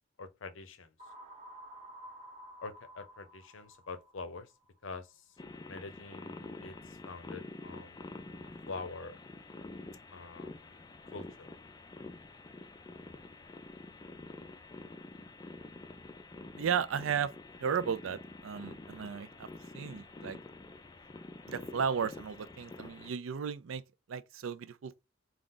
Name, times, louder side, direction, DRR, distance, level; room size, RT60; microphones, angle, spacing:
voice 1, 0.2-0.9 2.6-4.5 4.8-5.3 5.6-6.4 6.6-8.1 8.7-9.2 10.1-11.5, left 3 dB, 75° left, 0.6 m, -45 dB
sound 1, 1.0-4.9, right 1 dB, 35° right, 0.8 m, -52 dB
sound 2, 5.4-23.1, left 2 dB, 20° left, 0.4 m, -48 dB
voice 2, 16.5-17.3 17.6-19.5 19.7-20.4 21.5-23.8 24.1-25.0, right 7 dB, 90° right, 0.4 m, -34 dB
3.7 x 2.3 x 3.7 m
head